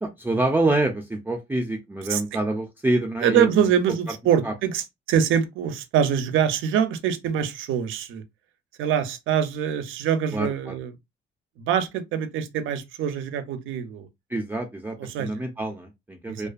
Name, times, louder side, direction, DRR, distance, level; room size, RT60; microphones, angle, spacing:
voice 1, 0.0-3.5 4.4-4.5 10.3-10.8 14.3-16.5, right 2 dB, 10° right, 0.4 m, -26 dB
voice 2, 3.2-8.2 8.8-10.9 11.6-14.1 15.0-15.3 16.3-16.5, right 8 dB, 85° right, 0.5 m, -24 dB
2.4 x 2.4 x 2.3 m
cardioid pair, 90°, 20 cm